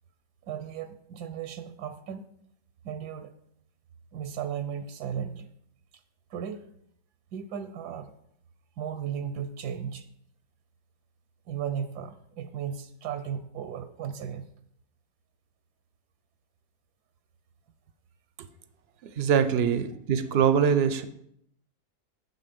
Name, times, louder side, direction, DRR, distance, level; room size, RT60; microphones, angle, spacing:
voice 1, 0.4-2.2 2.8-3.3 4.1-5.5 6.3-6.6 7.3-8.1 8.8-10.1 11.5-14.5, right 8 dB, 80° right, 10 dB, 1.2 m, -35 dB
voice 2, 19.2-21.0, right 7 dB, 60° right, 11 dB, 0.7 m, -23 dB
7.6 x 6.5 x 5.3 m, 0.72 s
omnidirectional pair, 1.7 m